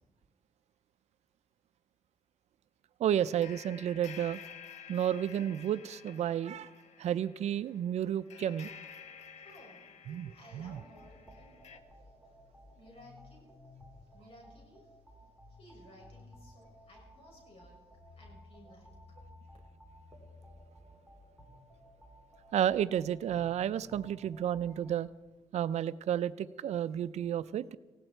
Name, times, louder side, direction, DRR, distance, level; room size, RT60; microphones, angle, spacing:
voice 1, 3.0-4.4 4.9-6.7 7.0-8.7 10.1-10.8 22.5-25.1 25.5-27.8, right 10 dB, 75° right, 15 dB, 0.5 m, -31 dB
sound 1, 3.1-11.8, left 7 dB, 85° left, 1.1 m, -52 dB
voice 2, 9.3-9.8 10.3-11.6 11.9-12.4 12.7-13.5 14.0-15.0 15.5-17.8 18.1-18.9, equal, 55° left, -1 dB, 6.6 m, -57 dB
sound 2, 10.5-25.0, left 1 dB, 5° left, 3.3 m, -56 dB
19.0 x 16.5 x 4.5 m, 1.2 s
cardioid pair, 115°, 11 cm